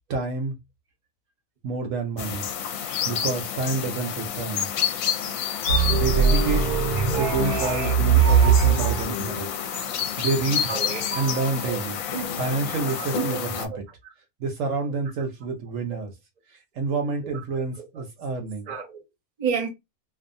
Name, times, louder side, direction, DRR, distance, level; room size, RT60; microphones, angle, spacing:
voice 1, 0.1-0.6 1.6-2.4 3.0-4.7 5.9-6.6 7.2-9.5 10.2-10.7 11.1-12.0 12.4-13.7 14.4-16.1 16.5-18.7, right 3 dB, 65° right, 0.9 m, -28 dB
sound 1, 2.2-13.7, left 8 dB, 70° left, 0.9 m, -29 dB
sound 2, 5.7-9.0, right 7 dB, 90° right, 1.2 m, -20 dB
sound 3, 5.9-13.7, left 5 dB, 50° left, 0.7 m, -35 dB
voice 2, 10.7-11.2 11.6-11.8 12.1-12.3 12.9-13.4 13.7-13.8 17.3-18.0 18.7-19.0 19.4-19.7, right 6 dB, 40° right, 0.7 m, -32 dB
2.6 x 2.3 x 2.5 m
omnidirectional pair, 1.6 m